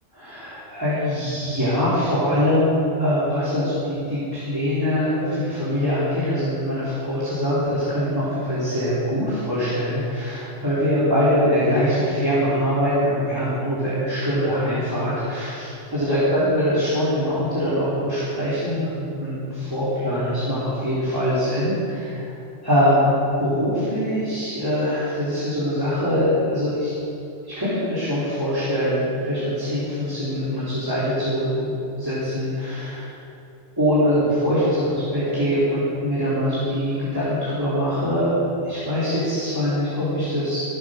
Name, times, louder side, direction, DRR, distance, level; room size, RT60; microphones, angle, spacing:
voice 1, 0.2-22.3 22.6-23.1 23.4-26.9 27.4-33.1 33.8-38.3 38.6-40.6, equal, 15° right, -12 dB, 3.5 m, -23 dB
15.5 x 8.4 x 6.4 m, 2.8 s
omnidirectional pair, 1.3 m